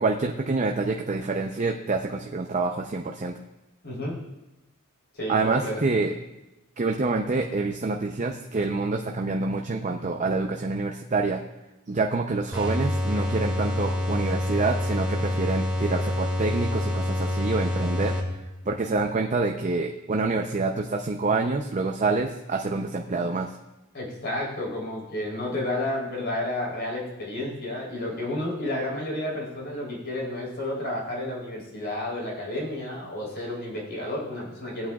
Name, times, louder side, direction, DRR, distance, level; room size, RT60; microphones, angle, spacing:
voice 1, 0.0-3.3 5.3-6.1 6.8-11.4 11.9-18.2 18.7-23.5, right 3 dB, 35° right, 2 dB, 0.6 m, -27 dB
voice 2, 3.8-4.2 5.1-5.9 23.9-34.9, left 1 dB, 50° left, -3 dB, 3.7 m, -31 dB
sound 1, 12.5-18.6, left 1 dB, 5° right, 2.2 m, -27 dB
17.5 x 8.8 x 2.4 m, 0.98 s
head